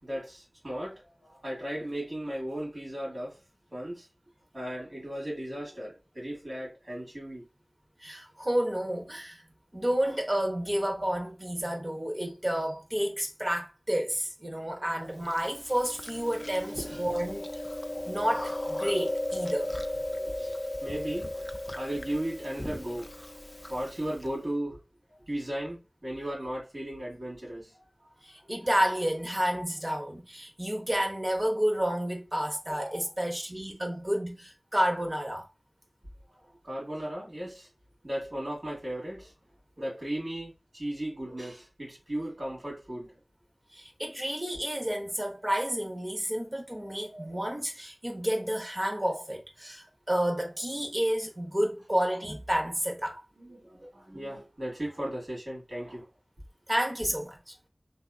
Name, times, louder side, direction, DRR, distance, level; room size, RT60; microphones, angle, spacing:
voice 1, 0.0-3.4 3.7-4.1 4.5-7.5 14.7-14.8 16.8-17.1 20.2-21.5 21.8-23.1 23.7-24.8 25.3-28.1 28.4-28.5 36.6-37.7 38.0-39.3 39.8-43.2 46.8-46.9 53.4-56.1, right 1 dB, 65° right, 1.9 m, -36 dB
voice 2, 8.0-9.4 9.7-17.6 18.0-19.7 28.2-35.5 43.7-53.2 53.8-53.9 56.7-57.4, equal, 35° right, 0.8 m, -30 dB
Chewing mastication, 15.3-24.3, left 1 dB, 25° left, 0.3 m, -36 dB
3.5 x 2.4 x 2.3 m
wide cardioid pair, 40°, 0 cm